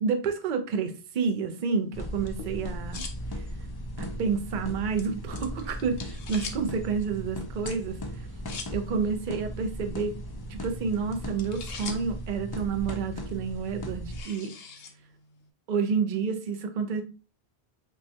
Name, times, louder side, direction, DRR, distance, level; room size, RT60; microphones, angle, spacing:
voice 1, 0.0-3.1 3.3-3.4 4.0-8.0 8.7-10.2 10.5-14.5 15.7-17.0, right 5 dB, 55° right, 6 dB, 0.7 m, -29 dB
sound 1, 1.5-15.5, left 5 dB, 70° left, 0.9 m, -47 dB
sound 2, 1.9-14.2, equal, 35° left, 0.4 m, -37 dB
5.3 x 2.2 x 2.8 m, 0.33 s
omnidirectional pair, 1.1 m